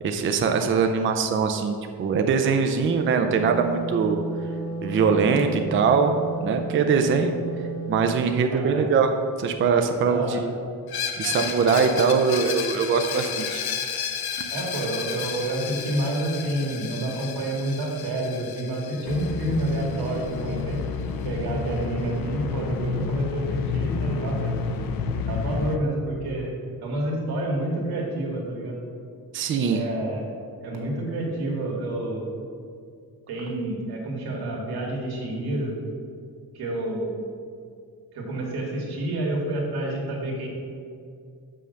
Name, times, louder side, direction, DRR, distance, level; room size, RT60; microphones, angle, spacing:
voice 1, 0.0-4.2 4.8-6.2 6.4-7.3 7.9-9.1 9.4-10.5 11.2-13.6 29.3-29.8, right 5 dB, 35° right, 5 dB, 0.4 m, -22 dB
Wind instrument woodwind instrument, 3.1-8.2, right 4 dB, 50° right, 0.9 m, -33 dB
voice 2, 8.5-8.8 10.0-10.5 14.5-20.8 21.2-24.5 25.3-26.5 26.8-28.8 29.7-30.3 30.6-32.3 33.3-35.8 36.5-37.2 38.1-40.5, right 1 dB, 85° right, -1 dB, 2.0 m, -29 dB
Screech, 10.9-20.5, left 8 dB, 90° left, 0.9 m, -33 dB
sound 1, 19.0-25.8, left 4 dB, 65° left, 0.7 m, -29 dB
6.3 x 5.6 x 6.5 m, 2.3 s
cardioid pair, 165°, 37 cm